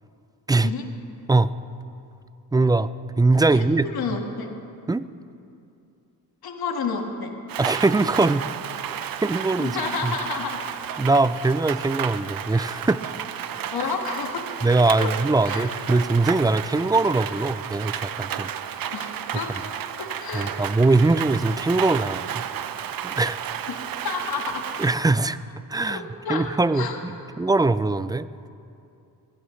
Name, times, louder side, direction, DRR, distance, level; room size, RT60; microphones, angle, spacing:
voice 1, 0.6-0.9 3.5-4.5 6.4-7.3 9.6-10.6 13.7-14.5 15.0-15.1 15.4-15.7 18.9-19.5 20.0-20.5 23.7-24.6 25.9-26.5 26.7-27.0, left 5 dB, 70° left, 3 dB, 1.7 m, -30 dB
voice 2, 2.5-2.9 3.2-3.9 4.9-5.0 7.6-8.4 9.2-9.8 10.0-10.1 11.0-13.0 14.6-18.5 20.3-22.4 23.0-23.4 24.8-25.4 25.7-26.0 26.3-28.3, right 3 dB, 10° right, 15 dB, 0.3 m, -21 dB
Rain, 7.5-25.0, right 9 dB, 60° right, 0.7 m, -32 dB
21.0 x 15.5 x 3.2 m, 2.6 s
cardioid pair, 70°, 39 cm